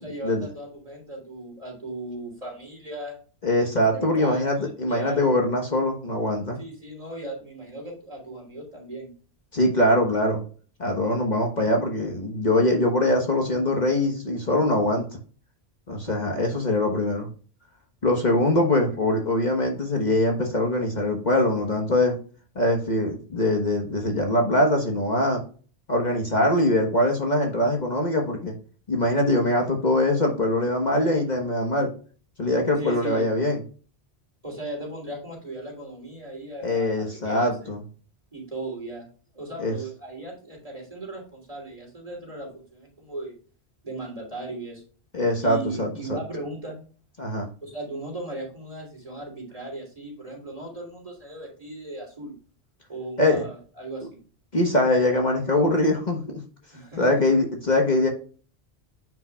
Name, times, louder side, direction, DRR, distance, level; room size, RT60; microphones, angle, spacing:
voice 1, 0.0-3.2 3.9-5.2 6.6-9.1 32.8-33.4 34.4-37.8 38.3-39.1 39.3-43.4 43.8-44.8 45.4-46.8 47.6-52.3 52.9-54.2 56.7-57.2, right 2 dB, 35° right, -2 dB, 3.3 m, -37 dB
voice 2, 3.4-6.6 9.5-10.4 10.8-15.0 15.9-17.3 18.0-22.2 22.5-25.4 25.9-28.5 28.9-31.9 32.4-33.6 36.6-37.8 39.6-39.7 45.1-46.2 47.2-47.5 53.2-53.5 54.5-56.4 57.0-58.1, left 1 dB, 45° left, 1 dB, 1.3 m, -23 dB
9.2 x 5.4 x 2.3 m, 0.40 s
omnidirectional pair, 1.1 m